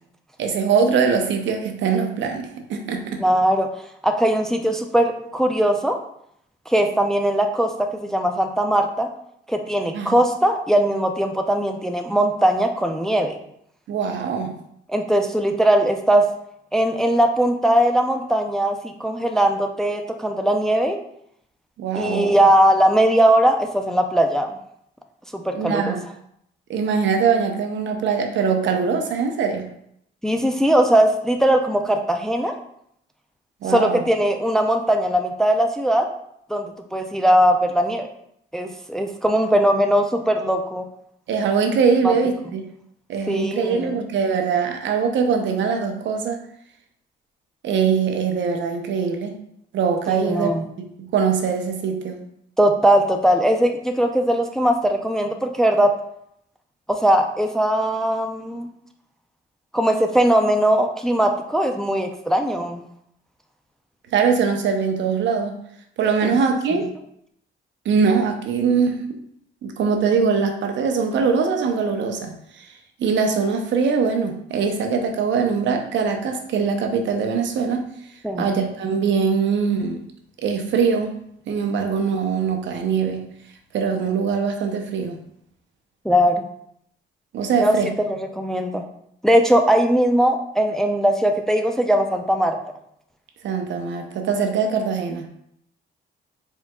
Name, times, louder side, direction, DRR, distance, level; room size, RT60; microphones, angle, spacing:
voice 1, 0.4-3.2 9.9-10.1 13.9-14.5 21.8-22.3 25.5-26.0 26.7-29.7 33.6-34.1 41.3-42.6 43.1-46.4 47.6-49.3 49.7-52.2 64.1-65.6 66.0-66.9 67.8-69.2 69.6-72.7 73.0-77.8 78.4-80.0 80.4-81.1 81.5-83.3 83.7-85.2 87.3-87.9 93.4-95.3, right 5 dB, 70° right, 5 dB, 0.7 m, -22 dB
voice 2, 3.2-3.7 4.0-6.0 6.7-9.1 9.5-13.4 14.9-16.3 16.7-21.0 22.0-24.5 25.3-26.0 30.2-32.5 33.7-36.1 36.5-38.1 38.5-40.9 42.0-42.1 43.3-44.0 50.1-50.7 52.6-55.9 56.9-58.7 59.7-62.8 66.2-66.4 66.7-66.8 78.2-78.5 86.0-86.4 87.6-87.8 88.0-88.8 89.2-92.6, right 1 dB, 5° left, 4 dB, 0.4 m, -20 dB
4.5 x 3.5 x 2.2 m, 0.72 s
cardioid pair, 90°, 20 cm